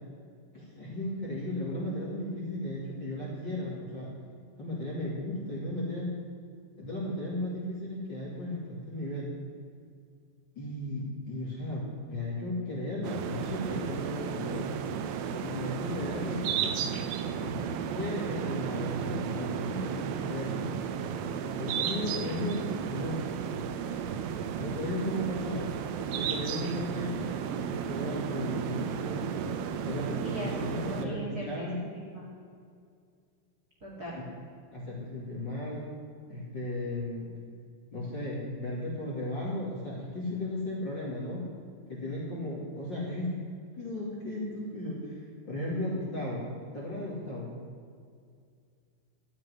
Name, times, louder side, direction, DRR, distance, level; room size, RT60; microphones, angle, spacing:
voice 1, 0.5-4.1 4.6-6.1 6.8-9.3 10.5-14.7 15.4-16.9 17.4-20.7 21.6-23.2 24.6-25.7 26.1-29.3 29.8-31.7 34.1-34.2 34.7-35.8 36.3-37.3 37.9-41.4 41.9-43.3 43.7-45.2 45.4-46.4 46.7-47.5, left 1 dB, 35° left, -6 dB, 2.3 m, -35 dB
sound 1, 13.0-31.1, right 7 dB, 75° right, 2.3 m, -33 dB
voice 2, 30.1-32.3 33.8-34.2, right 1 dB, 30° right, -4 dB, 2.2 m, -39 dB
13.5 x 7.5 x 9.7 m, 2.2 s
omnidirectional pair, 5.0 m